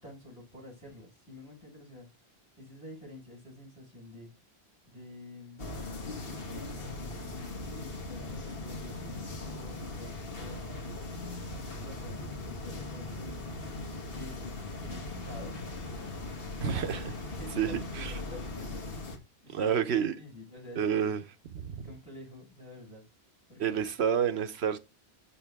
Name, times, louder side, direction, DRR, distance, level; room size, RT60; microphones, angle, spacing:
voice 1, 0.0-4.3 4.8-5.7 6.2-13.5 14.1-21.1 21.8-23.0 23.5-23.8, left 1 dB, 5° right, 4.9 m, -49 dB
sound 1, 5.6-19.2, left 2 dB, 60° left, 1.5 m, -39 dB
voice 2, 16.6-17.0 17.6-18.1 19.5-20.2 20.8-21.2 21.5-21.9 23.6-24.8, right 8 dB, 75° right, 1.0 m, -29 dB
6.6 x 5.5 x 3.4 m
omnidirectional pair, 1.1 m